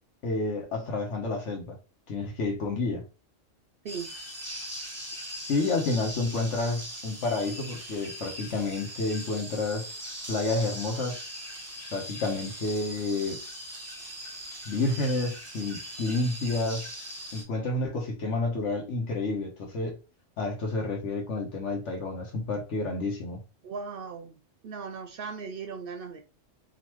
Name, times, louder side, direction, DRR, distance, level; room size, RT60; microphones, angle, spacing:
voice 1, 0.2-1.8 2.1-3.0 5.5-9.8 10.3-11.2 11.9-13.4 14.7-16.9 17.3-19.9 20.4-23.4, left 2 dB, 75° left, 1.4 m, -30 dB
voice 2, 3.8-4.1 23.6-24.4 24.6-26.2, right 5 dB, 60° right, 0.6 m, -38 dB
sound 1, 3.9-17.4, equal, 15° right, 0.9 m, -40 dB
3.9 x 2.6 x 3.0 m
omnidirectional pair, 1.2 m